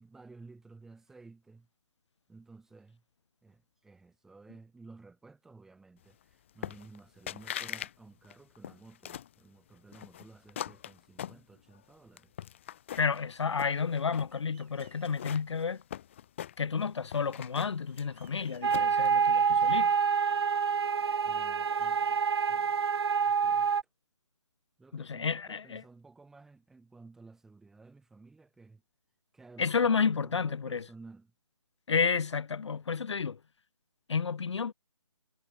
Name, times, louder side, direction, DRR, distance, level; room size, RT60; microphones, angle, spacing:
voice 1, 0.0-1.7 2.3-3.0 3.4-12.3 21.2-22.8 23.2-23.7 24.8-28.8 29.3-31.3, right 3 dB, ahead, 1.6 m, -54 dB
sound 1, 6.6-7.0 7.3-7.9 8.2-9.3 9.9-11.8 12.2-13.2 13.5-14.3 14.8-16.8 17.1-19.1, left 11 dB, 25° left, 0.9 m, -41 dB
voice 2, 13.0-15.8 16.6-19.9 24.9-25.8 29.6-30.8 31.9-33.4 34.1-34.7, left 5 dB, 60° left, 0.9 m, -31 dB
sound 2, 14.3-15.1 17.9-19.1 19.6-21.1 21.5-23.1, right 13 dB, 25° right, 5.8 m, -67 dB
sound 3, 18.6-23.8, right 6 dB, 50° right, 0.8 m, -27 dB
hypercardioid pair, 165°, 17 cm